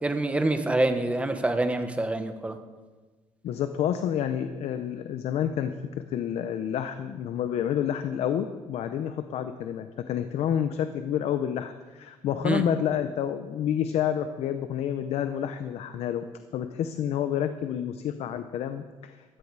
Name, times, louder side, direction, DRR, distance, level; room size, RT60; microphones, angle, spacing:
voice 1, 0.0-2.6 12.4-12.6, right 2 dB, 10° right, 8 dB, 1.2 m, -26 dB
voice 2, 3.4-5.7 6.1-16.2 16.5-19.4, left 9 dB, 70° left, 9 dB, 0.8 m, -29 dB
14.0 x 14.0 x 4.7 m, 1.3 s
cardioid pair, 130°, 11 cm